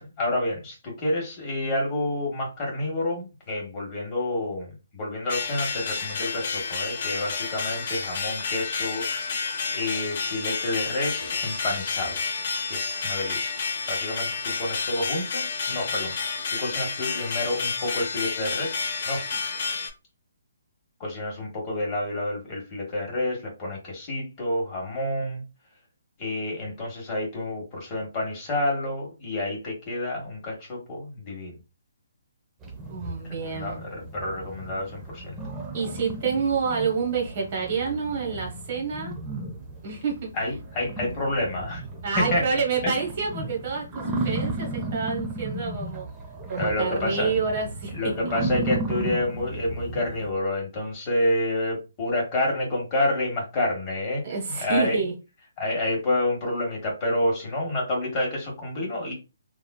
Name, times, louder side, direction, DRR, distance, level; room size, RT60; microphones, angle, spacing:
voice 1, 0.0-9.5 9.7-12.2 12.7-13.6 13.9-19.2 21.0-25.4 26.2-31.5 33.2-35.4 40.3-41.8 42.2-42.4 42.8-42.9 46.6-47.3 47.9-54.2 54.5-55.0 55.6-59.1, left 1 dB, 30° left, -1 dB, 1.2 m, -29 dB
sound 1, 5.3-19.9, left 4 dB, 50° left, 0.6 m, -30 dB
sound 2, 32.6-50.3, right 2 dB, 10° right, 0.6 m, -34 dB
voice 2, 32.9-33.8 35.7-39.1 39.8-40.3 42.0-46.1 46.5-48.1 54.2-55.1, right 5 dB, 40° right, 0 dB, 1.0 m, -28 dB
3.0 x 2.3 x 2.2 m, 0.28 s
hypercardioid pair, 145°, 0 cm